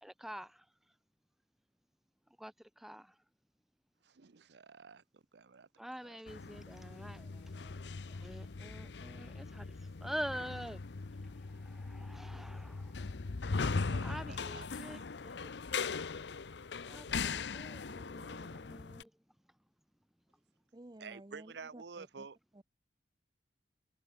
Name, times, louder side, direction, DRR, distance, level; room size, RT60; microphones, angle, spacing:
voice 1, 0.0-0.6 2.4-3.1 5.8-7.7 8.1-9.6 10.0-10.8 11.5-12.9 14.0-15.0 15.4-15.5 16.9-19.1, equal, ahead, 0.5 m, -46 dB
voice 2, 4.0-5.7 6.0-6.2 13.9-15.0 21.0-22.4, right 5 dB, 70° right, 0.7 m, -51 dB
sound 1, 6.3-19.0, left 4 dB, 75° left, 0.7 m, -40 dB
voice 3, 20.7-22.3 22.5-22.6, right 1 dB, 25° right, 0.8 m, -54 dB
head